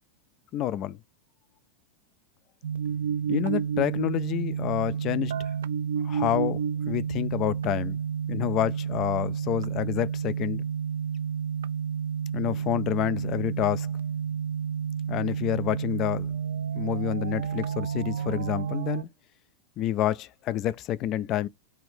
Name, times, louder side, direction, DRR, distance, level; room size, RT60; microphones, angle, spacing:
voice 1, 0.5-1.0 3.3-5.4 6.0-6.6 6.9-8.0 8.3-10.6 12.3-13.9 15.1-16.3 16.7-19.1 19.8-21.5, left 12 dB, 35° left, 0.4 m, -28 dB
sound 1, 2.6-19.0, right 7 dB, 60° right, 0.3 m, -30 dB
5.5 x 2.5 x 3.3 m
figure-of-eight pair, 90°, 0 cm